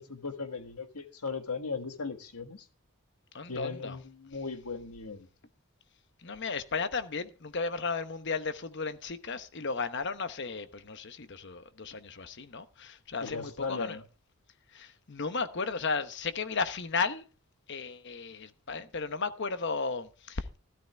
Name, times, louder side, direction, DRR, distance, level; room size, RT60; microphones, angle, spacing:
voice 1, 0.2-2.7 3.5-5.3 13.2-14.0, left 4 dB, 90° left, 1.6 m, -37 dB
voice 2, 3.3-4.0 6.2-14.0 14.7-17.2 17.7-20.6, left 4 dB, 50° left, 0.9 m, -34 dB
13.0 x 13.0 x 3.4 m
head